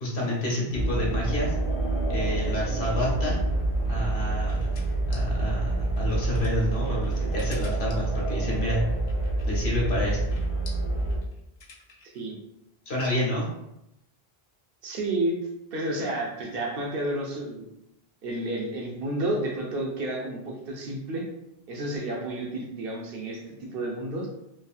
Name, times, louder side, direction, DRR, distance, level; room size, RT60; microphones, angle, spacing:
voice 1, 0.0-1.5 2.1-3.4 3.9-4.7 5.1-8.8 9.5-10.2 12.9-13.4, left 1 dB, 90° left, -4 dB, 1.3 m, -29 dB
sound 1, 0.7-11.2, right 2 dB, 35° left, 0.6 m, -27 dB
sound 2, 3.5-12.2, left 4 dB, 70° left, 0.9 m, -51 dB
voice 2, 14.8-15.4 15.7-17.6 18.2-21.3 21.7-24.3, right 1 dB, 65° right, -1 dB, 0.9 m, -31 dB
3.2 x 2.6 x 2.3 m, 0.84 s
omnidirectional pair, 1.0 m